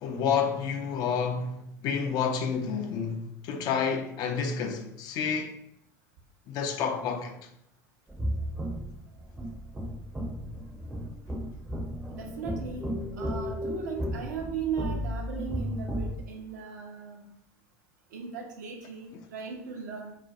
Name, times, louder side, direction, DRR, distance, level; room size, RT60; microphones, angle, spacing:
voice 1, 0.0-5.5 6.5-7.3, left 6 dB, 45° left, 0.3 m, -29 dB
sound 1, 8.1-16.2, equal, 10° right, 0.5 m, -34 dB
voice 2, 12.1-12.9 13.2-17.2 18.1-20.2, right 6 dB, 70° right, 0.6 m, -37 dB
2.4 x 2.2 x 2.5 m
figure-of-eight pair, 75°, 9 cm